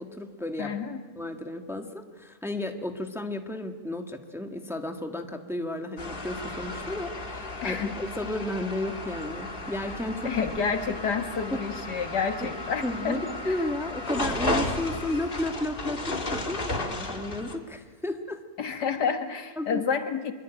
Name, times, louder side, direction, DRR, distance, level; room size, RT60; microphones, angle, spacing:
voice 1, 0.0-0.7 1.1-10.3 11.5-11.7 12.4-12.5 12.8-18.4 19.6-19.8, left 1 dB, ahead, 5 dB, 1.5 m, -33 dB
voice 2, 0.6-1.0 7.6-7.9 10.2-13.5 18.6-20.3, left 6 dB, 80° left, 7 dB, 2.3 m, -29 dB
sound 1, 6.0-17.6, left 2 dB, 35° left, 2.3 m, -34 dB
25.0 x 22.5 x 9.1 m, 1.4 s
omnidirectional pair, 1.7 m